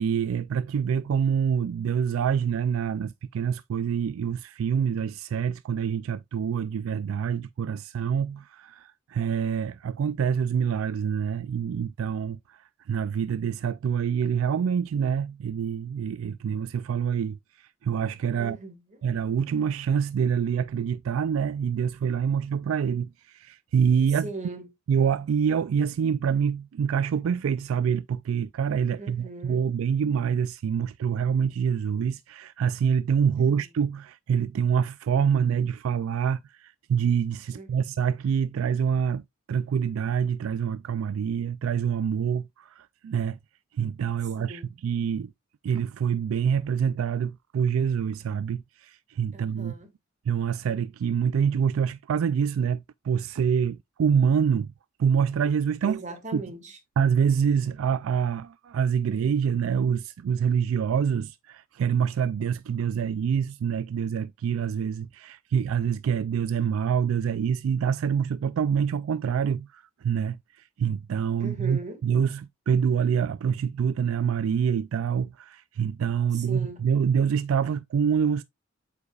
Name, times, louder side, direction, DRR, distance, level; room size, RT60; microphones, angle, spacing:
voice 1, 0.0-18.6 19.0-24.3 24.9-43.4 43.7-45.3 45.6-49.7 50.3-54.7 55.0-56.0 56.3-56.4 57.0-70.4 70.8-78.4, right 7 dB, 80° right, 0.3 m, -26 dB
voice 2, 18.4-19.0 24.2-24.7 29.0-29.6 33.5-33.6 37.5-38.0 44.4-44.7 49.3-49.9 55.8-56.8 71.4-72.0 76.3-76.9, right 2 dB, 35° right, 1.8 m, -39 dB
8.0 x 5.4 x 2.3 m
head